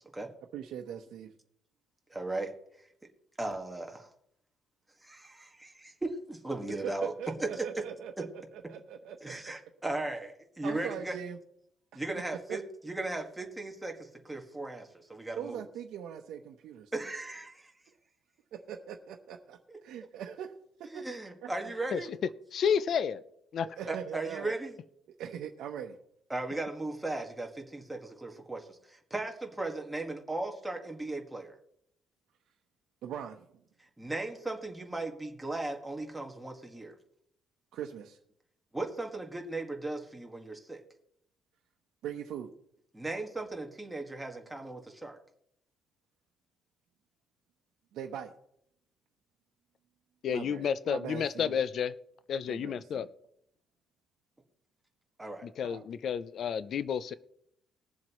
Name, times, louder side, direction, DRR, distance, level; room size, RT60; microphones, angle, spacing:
voice 1, 0.5-1.3 6.8-9.3 10.6-11.4 11.9-12.0 12.5-12.6 15.3-16.9 18.5-20.5 20.8-21.0 21.4-21.5 23.6-24.5 25.2-26.0 33.0-33.4 37.7-38.2 42.0-42.5 47.9-48.3 50.3-51.6 52.5-53.1 55.6-55.9, right 8 dB, 75° right, 1.0 m, -41 dB
voice 2, 2.1-2.5 3.4-4.1 5.0-7.1 7.4-7.7 8.2-8.3 9.2-11.2 11.9-15.7 16.9-17.7 19.7-19.8 20.8-22.1 23.9-24.7 26.3-31.6 34.0-37.0 38.7-40.8 42.9-45.2 55.2-55.5, right 2 dB, 10° right, 1.7 m, -37 dB
voice 3, 22.5-23.2 23.5-23.7 50.2-51.9 52.3-53.1 55.4-57.1, left 7 dB, 50° left, 0.5 m, -31 dB
21.0 x 7.4 x 3.1 m
cardioid pair, 130°, 0 cm